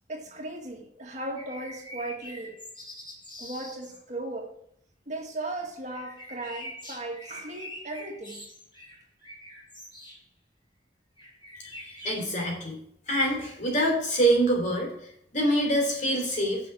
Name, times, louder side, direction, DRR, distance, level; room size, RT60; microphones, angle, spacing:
voice 1, 0.1-2.5 3.4-4.5 5.1-8.4, right 2 dB, 40° right, 0 dB, 1.9 m, -37 dB
sound 1, 1.3-4.0 5.9-10.2 11.2-12.2, equal, 30° left, 4.2 m, -44 dB
voice 2, 12.0-12.8 13.1-14.9 15.3-16.6, right 1 dB, 45° left, 0 dB, 3.4 m, -25 dB
7.3 x 6.3 x 7.3 m, 0.70 s
head